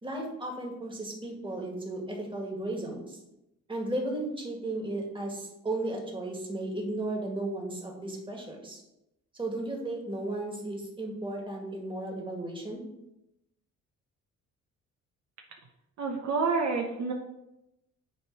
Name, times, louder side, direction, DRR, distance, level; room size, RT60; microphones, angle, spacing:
voice 1, 0.0-3.2 3.7-8.8 9.4-12.8, right 2 dB, 15° right, -1 dB, 2.0 m, -35 dB
voice 2, 16.0-17.1, right 4 dB, 60° right, 1 dB, 1.0 m, -28 dB
8.9 x 3.3 x 4.7 m, 0.89 s
cardioid pair, 90°, 30 cm